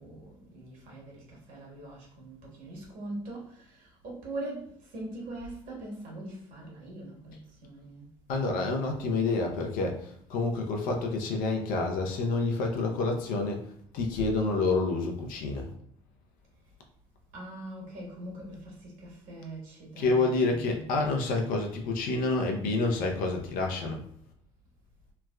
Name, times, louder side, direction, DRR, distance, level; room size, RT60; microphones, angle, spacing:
voice 1, 0.0-8.1 17.3-20.8, right 1 dB, 55° right, -3 dB, 1.3 m, -42 dB
voice 2, 8.3-13.7 13.9-15.7 20.0-24.0, left 3 dB, 60° left, 2 dB, 0.6 m, -28 dB
3.3 x 2.1 x 2.2 m, 0.64 s
hypercardioid pair, 60°, 16 cm